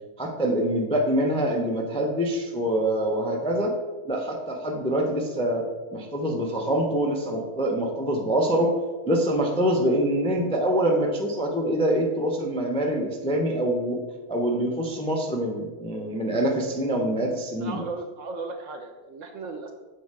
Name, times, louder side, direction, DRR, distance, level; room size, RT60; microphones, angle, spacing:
voice 1, 0.2-3.7 4.0-5.7 5.9-8.7 9.1-14.0 14.3-17.8, right 1 dB, 10° left, 0 dB, 0.4 m, -25 dB
voice 2, 17.6-19.7, right 3 dB, 65° right, 5 dB, 0.8 m, -36 dB
7.0 x 4.3 x 4.8 m, 1.3 s
omnidirectional pair, 1.7 m